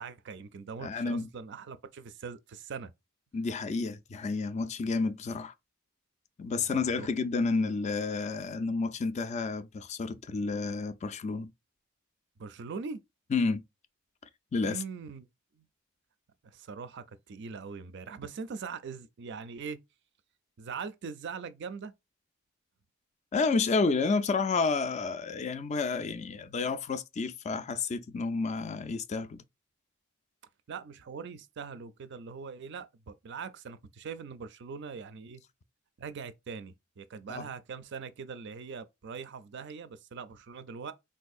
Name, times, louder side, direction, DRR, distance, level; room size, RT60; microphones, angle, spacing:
voice 1, 0.0-2.9 6.6-7.1 12.4-13.0 14.6-15.3 15.5-15.7 16.4-19.8 20.6-21.9 30.7-35.4 36.0-40.9, right 5 dB, 55° right, 0.4 m, -42 dB
voice 2, 0.8-1.3 3.3-5.5 6.4-11.5 13.3-13.6 14.5-14.8 23.3-29.4 37.3-37.5, left 4 dB, 35° left, 0.3 m, -30 dB
3.8 x 2.7 x 2.3 m
head